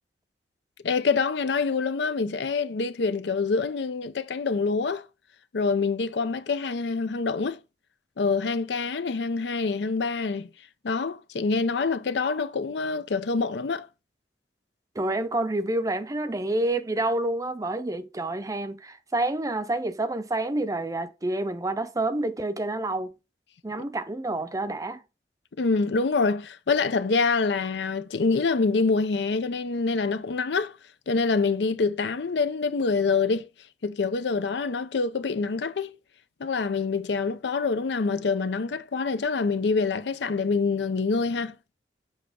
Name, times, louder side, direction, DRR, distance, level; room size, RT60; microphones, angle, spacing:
voice 1, 0.8-5.0 5.5-7.6 8.2-10.5 10.8-13.9 25.6-30.8 31.1-33.5 33.8-36.0 36.4-41.5, left 4 dB, 80° left, 0.5 m, -26 dB
voice 2, 15.0-23.1 23.6-25.0, right 2 dB, 20° right, 0.5 m, -28 dB
7.2 x 2.8 x 5.0 m
head